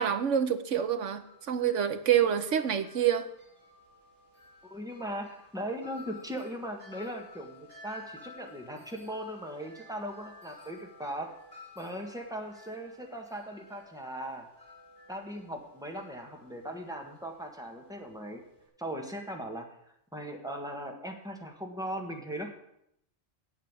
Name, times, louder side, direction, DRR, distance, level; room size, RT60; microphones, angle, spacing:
voice 1, 0.0-3.3, right 9 dB, 75° right, 10 dB, 1.2 m, -27 dB
Wind chime, 0.8-18.7, left 2 dB, 60° left, 5.0 m, -54 dB
voice 2, 4.7-11.3 11.8-14.5 15.1-18.4 18.8-19.7 20.1-22.5, equal, 5° right, 2 dB, 1.7 m, -39 dB
8.6 x 8.4 x 8.4 m, 0.76 s
omnidirectional pair, 1.3 m